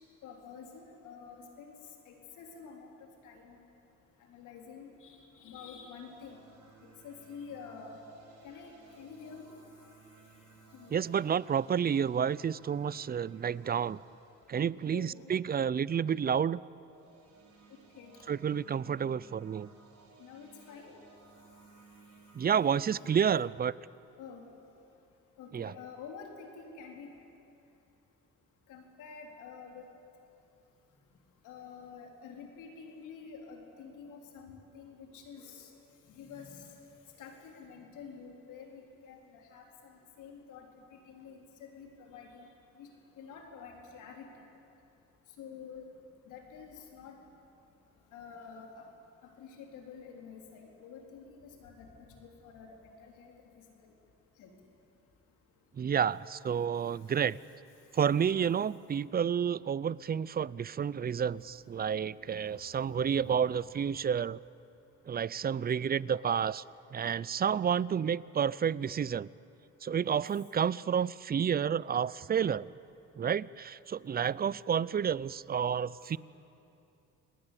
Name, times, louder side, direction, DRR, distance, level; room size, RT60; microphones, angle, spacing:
voice 1, 0.2-1.8 2.1-2.9 3.2-3.6 4.3-6.4 6.8-8.0 8.4-9.5 10.7-10.9 14.9-15.3 17.9-18.2 20.2-20.9 23.0-23.1 24.2-24.5 25.4-27.1 28.7-29.9 31.4-35.7 36.1-36.7 37.2-40.7 40.9-42.5 42.8-42.9 43.2-44.3 45.4-45.9 46.3-47.2 48.1-48.9 49.4-51.9 52.2-53.3 54.4-54.5 63.1-63.5 76.0-76.2, left 6 dB, 90° left, 1 dB, 4.0 m, -49 dB
sound 1, 5.8-15.4 16.8-22.9, right 4 dB, 70° right, 6.1 m, -59 dB
voice 2, 10.9-14.0 14.5-16.6 18.3-19.7 22.3-23.7 25.5-25.7 55.8-57.4 57.9-64.4 65.1-66.6 66.9-69.3 69.8-72.7 73.2-76.2, right 7 dB, 30° right, 21 dB, 0.5 m, -30 dB
28.5 x 20.0 x 8.4 m, 2.7 s
cardioid pair, 90°, 30 cm